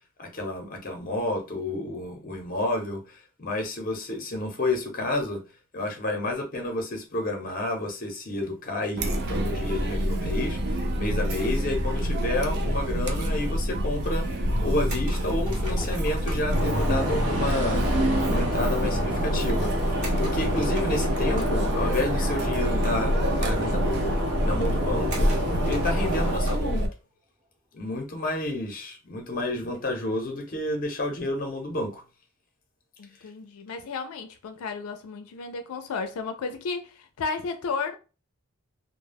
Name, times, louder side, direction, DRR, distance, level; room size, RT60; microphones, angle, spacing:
voice 1, 0.2-5.4 5.7-17.8 18.2-23.1 23.4-24.0 24.4-25.3 25.6-26.9 27.7-32.0, left 1 dB, 40° left, 0.6 m, -30 dB
Chatter, 9.0-26.9, equal, 50° right, 0.4 m, -27 dB
sound 1, 14.9-16.6 20.0-21.7 22.8-22.9 23.2-23.3 24.0-24.1 25.1-26.7, right 1 dB, 35° right, 0.8 m, -40 dB
sound 2, 16.5-26.4, equal, 85° right, 0.7 m, -28 dB
voice 2, 33.0-38.0, left 4 dB, 90° left, 0.4 m, -33 dB
2.2 x 2.0 x 3.3 m
head